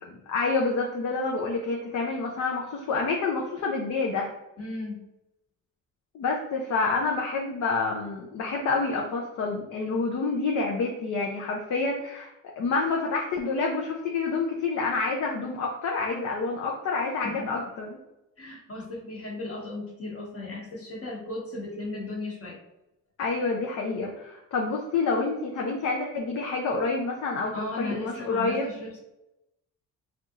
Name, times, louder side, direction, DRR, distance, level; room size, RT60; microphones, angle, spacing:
voice 1, 0.3-4.3 6.1-12.3 12.6-18.0 23.2-28.7, left 3 dB, 55° left, -1 dB, 0.6 m, -28 dB
voice 2, 4.6-5.1 17.2-17.5 18.4-22.6 27.5-29.0, left 2 dB, 40° left, -2 dB, 1.2 m, -36 dB
3.4 x 2.8 x 2.5 m, 0.90 s
cardioid pair, 85°, 34 cm